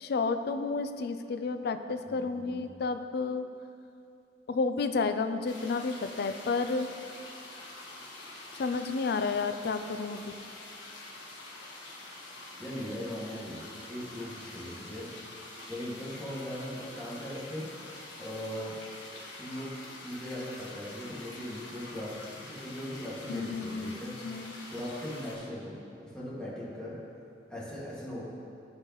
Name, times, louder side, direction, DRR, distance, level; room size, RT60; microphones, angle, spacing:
voice 1, 0.0-3.4 4.5-6.9 8.6-10.2 23.3-24.5, left 4 dB, 60° left, 9 dB, 0.4 m, -31 dB
voice 2, 2.0-2.6 12.6-13.6 13.9-15.1 15.7-17.7 18.1-18.8 19.4-19.7 20.0-24.1 24.7-27.0 27.5-28.3, equal, 5° left, -9 dB, 1.9 m, -39 dB
sound 1, 5.4-25.4, left 2 dB, 75° left, 1.5 m, -46 dB
14.5 x 4.8 x 3.0 m, 2.6 s
head